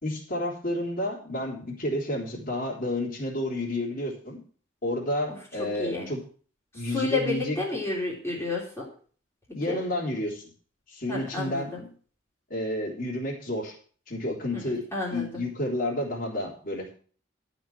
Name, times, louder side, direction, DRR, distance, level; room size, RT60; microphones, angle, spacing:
voice 1, 0.0-4.4 4.8-6.2 6.7-7.6 9.5-10.5 10.9-11.7 12.5-13.7 14.1-16.9, left 1 dB, 45° left, -1 dB, 3.5 m, -30 dB
voice 2, 5.3-6.1 6.7-8.9 9.5-9.8 11.1-11.9 14.5-15.4, left 3 dB, 15° left, -4 dB, 3.2 m, -31 dB
12.5 x 5.2 x 7.5 m, 0.43 s
head